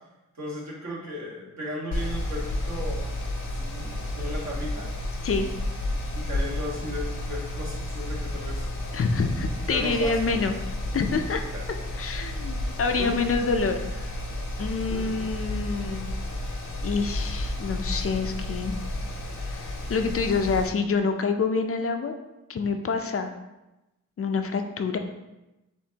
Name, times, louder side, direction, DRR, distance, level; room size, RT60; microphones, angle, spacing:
voice 1, 0.3-3.1 3.6-4.9 6.1-8.6 9.7-10.5 11.5-11.6 13.0-13.1 14.9-15.3, equal, 60° right, -5 dB, 1.5 m, -36 dB
Mechanical fan, 1.9-20.7, left 1 dB, 75° left, 0.8 m, -32 dB
voice 2, 8.9-10.5 10.9-11.4 12.0-14.1 14.6-16.1 16.8-18.7 19.4-22.1 22.5-23.3 24.2-25.0, left 4 dB, 45° left, 6 dB, 0.5 m, -27 dB
7.1 x 2.5 x 2.8 m, 1.0 s
wide cardioid pair, 90°, 31 cm